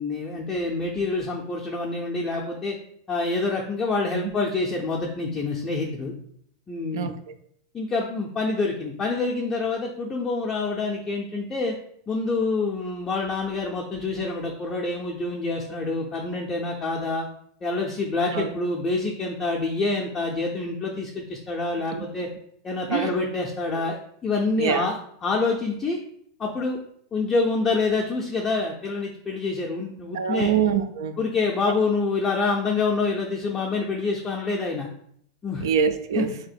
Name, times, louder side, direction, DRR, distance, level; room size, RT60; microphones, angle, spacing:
voice 1, 0.0-2.8 3.1-6.1 6.7-7.1 7.7-11.8 12.1-17.3 17.6-22.3 22.6-24.0 24.2-26.0 26.4-26.8 27.1-30.5 31.2-34.9 35.4-35.7 36.2-36.3, left 3 dB, 15° left, -2 dB, 0.4 m, -26 dB
voice 2, 6.9-7.3 18.3-18.5 21.9-22.1 22.9-23.1 24.6-24.9 30.1-31.2 35.6-36.3, right 8 dB, 85° right, 10 dB, 0.4 m, -24 dB
3.0 x 2.8 x 4.2 m, 0.67 s
supercardioid pair, 155°, 2 cm